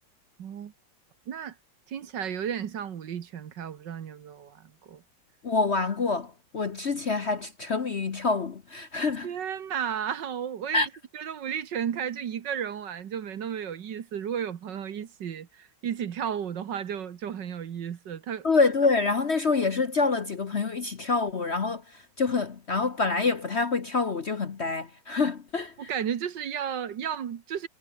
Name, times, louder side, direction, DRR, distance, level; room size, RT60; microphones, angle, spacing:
voice 1, 0.4-0.7 1.3-1.6 1.9-5.0 9.2-18.5 25.8-27.7, right 8 dB, 65° right, 1.9 m, -33 dB
voice 2, 5.4-9.3 10.7-10.9 18.4-25.9, left 4 dB, 40° left, 1.1 m, -26 dB
omnidirectional pair, 2.1 m